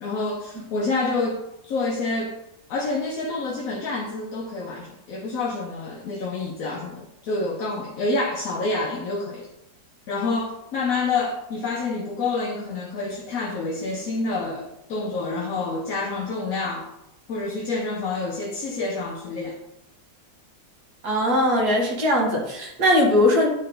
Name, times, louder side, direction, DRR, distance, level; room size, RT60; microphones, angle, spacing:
voice 1, 0.0-2.4 2.7-9.5 10.1-16.9 17.3-19.6, left 3 dB, 60° left, -1 dB, 1.0 m, -28 dB
voice 2, 21.0-23.5, left 1 dB, 60° right, -1 dB, 1.9 m, -20 dB
9.2 x 3.3 x 3.7 m, 0.85 s
omnidirectional pair, 2.0 m